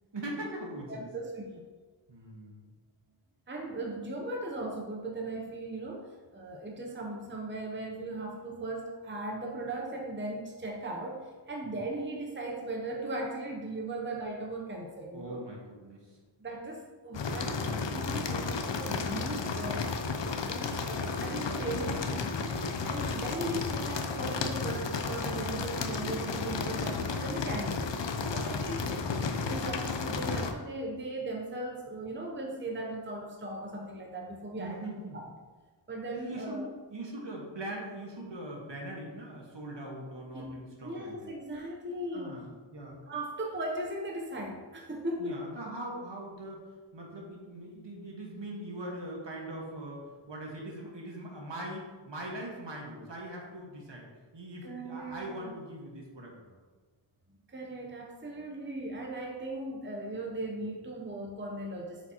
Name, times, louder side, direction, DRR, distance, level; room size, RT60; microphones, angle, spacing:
voice 1, 0.1-1.1 2.1-2.7 11.6-11.8 15.1-16.2 20.6-20.9 28.6-28.9 34.6-35.2 36.1-36.6 36.9-41.3 42.1-43.0 45.2-46.6 46.9-54.1 54.3-56.6, right 1 dB, 65° right, -2 dB, 1.5 m, -41 dB
voice 2, 0.9-1.7 3.5-15.4 16.4-27.9 28.3-29.0 29.3-34.8 35.1-35.2 35.9-36.7 40.3-42.5 43.1-45.4 54.6-55.5 57.5-62.1, right 2 dB, 25° right, 0 dB, 0.7 m, -38 dB
sound 1, 17.1-30.5, left 4 dB, 65° left, 0.6 m, -33 dB
7.6 x 4.8 x 2.9 m, 1.4 s
wide cardioid pair, 65°, 47 cm